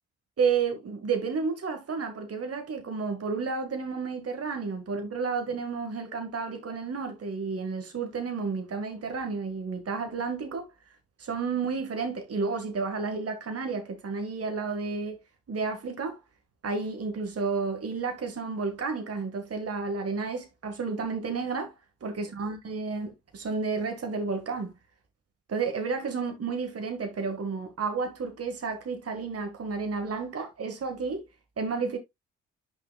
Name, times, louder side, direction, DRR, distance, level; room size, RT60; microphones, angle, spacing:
voice 1, 0.4-10.7 11.2-15.2 15.5-16.2 16.6-21.7 22.0-24.7 25.5-31.3 31.6-32.0, right 4 dB, 45° right, 1.8 m, -31 dB
8.3 x 5.6 x 2.3 m
hypercardioid pair, 45°, 32 cm